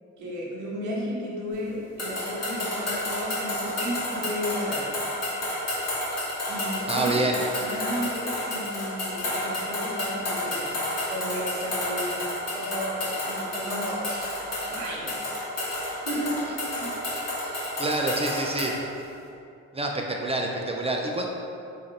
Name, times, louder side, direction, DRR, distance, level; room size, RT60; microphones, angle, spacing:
voice 1, 0.2-4.9 6.5-7.2 7.6-10.7 11.1-12.2 12.5-14.3 14.7-15.3 16.1-16.3 16.8-16.9, equal, 70° right, -4 dB, 1.1 m, -33 dB
sound 1, 2.0-18.8, left 1 dB, 55° left, 1.2 m, -30 dB
voice 2, 6.9-7.4 17.8-18.7 19.7-21.3, right 2 dB, 20° right, 1 dB, 0.3 m, -27 dB
3.8 x 2.5 x 4.0 m, 2.7 s
cardioid pair, 90°, 30 cm